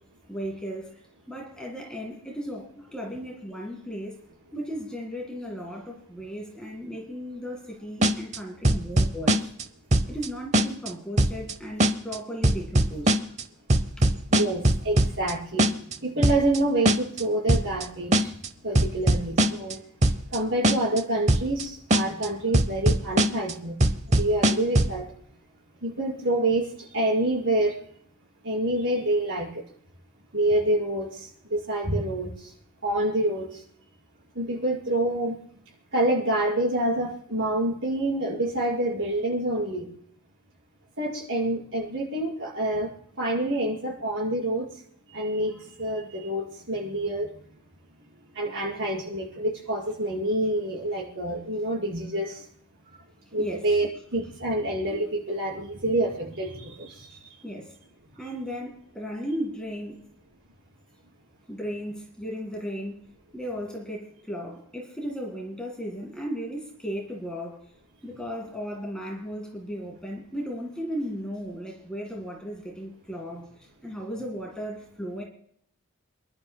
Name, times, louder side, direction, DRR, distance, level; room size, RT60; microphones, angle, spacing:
voice 1, 0.3-1.0 1.3-4.2 4.5-9.5 10.1-13.2 14.0-14.1 53.4-53.7 57.1-57.2 57.4-57.8 58.2-60.1 61.5-63.0 63.3-67.7 68.0-75.2, equal, 5° left, 0 dB, 2.0 m, -35 dB
sound 1, 8.0-8.4 8.6-9.6 9.9-10.3 10.5-10.9 11.2-11.5 11.8-12.2 12.4-13.4 13.7-15.3 15.6-15.9 16.2-16.6 16.9-17.2 17.5-17.8 18.1-18.5 18.8-19.7 20.0-20.4 20.6-21.0 21.3-21.6 21.9-22.3 22.5-23.5 23.8-25.0, right 1 dB, 30° right, 0.7 m, -20 dB
voice 2, 14.3-15.7 16.0-18.3 18.6-19.8 20.3-23.8 24.2-25.1 25.8-26.7 26.9-27.7 28.4-29.6 30.3-31.1 31.5-32.3 32.8-33.5 34.4-35.4 35.9-39.9 41.0-42.9 43.2-44.7 45.1-47.3 48.4-52.3 53.3-56.9, right 1 dB, 55° right, -4 dB, 5.6 m, -27 dB
28.5 x 11.5 x 2.2 m, 0.66 s
head